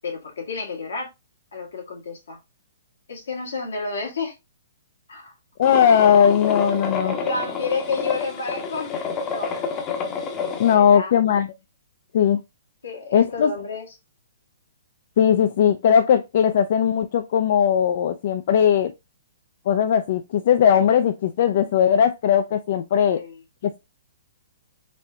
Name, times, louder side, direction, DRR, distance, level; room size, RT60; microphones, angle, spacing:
voice 1, 0.0-1.1 1.5-2.4 3.1-4.3 5.1-5.3 7.0-8.9 9.2-9.5 10.6-11.2 12.8-13.9 23.1-23.4, left 4 dB, 80° left, 1.6 m, -30 dB
voice 2, 5.6-7.2 10.6-11.5 12.1-12.4 13.1-13.5 15.2-18.9 19.7-23.2 23.6-23.8, left 8 dB, 55° left, 0.3 m, -18 dB
sound 1, 5.6-10.7, left 5 dB, 25° left, 0.7 m, -29 dB
4.1 x 2.7 x 2.2 m
hypercardioid pair, 130°, 0 cm